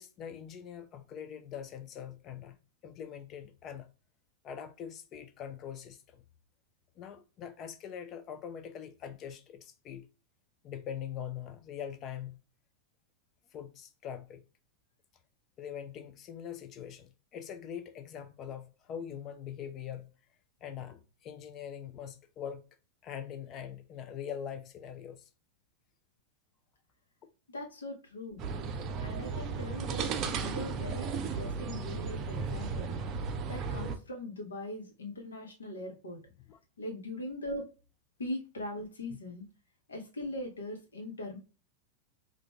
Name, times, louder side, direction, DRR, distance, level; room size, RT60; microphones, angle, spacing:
voice 1, 0.0-2.6 2.8-3.9 4.4-6.2 7.0-10.1 10.6-12.4 13.5-14.4 15.6-20.1 20.6-22.6 23.0-25.3 29.7-29.8 36.5-36.6, left 8 dB, 35° left, 0.5 m, -43 dB
voice 2, 27.5-28.4 29.0-33.0 33.5-36.2 36.8-37.7 38.2-39.5 39.9-41.4, left 1 dB, 70° left, 1.1 m, -40 dB
sound 1, 28.4-34.0, right 5 dB, 35° right, 0.5 m, -35 dB
5.0 x 2.5 x 2.3 m
figure-of-eight pair, 90°, 0 cm